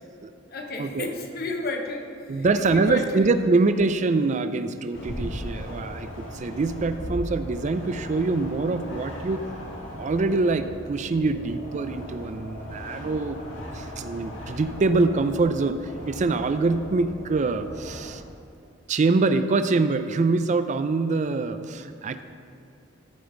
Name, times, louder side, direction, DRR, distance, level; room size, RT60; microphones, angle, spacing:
voice 1, 0.5-3.4, left 2 dB, 55° left, 3 dB, 1.0 m, -33 dB
voice 2, 2.3-9.4 10.0-13.4 13.7-18.2 18.9-22.2, right 3 dB, 40° right, 10 dB, 0.4 m, -24 dB
sound 1, 4.9-18.1, equal, 85° left, 1.6 m, -38 dB
13.5 x 5.3 x 3.8 m, 2.5 s
head